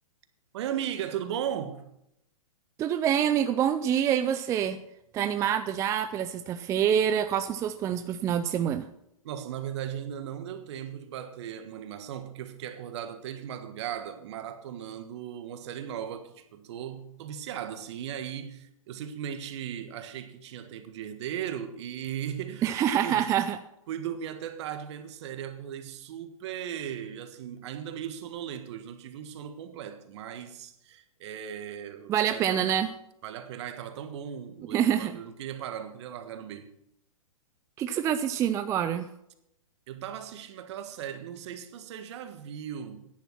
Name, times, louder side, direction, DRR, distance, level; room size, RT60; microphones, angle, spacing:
voice 1, 0.5-1.9 9.2-22.7 23.0-23.2 23.9-32.6 33.2-36.7 39.9-43.1, right 9 dB, 50° right, 1.5 m, -37 dB
voice 2, 2.8-4.8 5.1-8.9 22.6-23.6 32.1-32.9 34.7-35.1 37.8-39.1, right 9 dB, 15° right, 0.4 m, -26 dB
10.5 x 10.5 x 5.9 m
hypercardioid pair, 125°, 18 cm